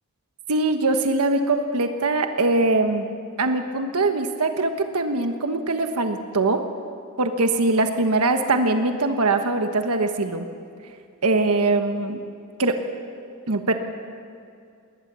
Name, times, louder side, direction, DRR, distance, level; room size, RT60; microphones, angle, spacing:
voice 1, 0.5-3.1 3.4-6.6 7.2-10.5 11.2-12.2 12.6-12.8 13.5-13.7, right 2 dB, 75° right, 6 dB, 1.3 m, -22 dB
20.5 x 20.0 x 6.9 m, 2.4 s
head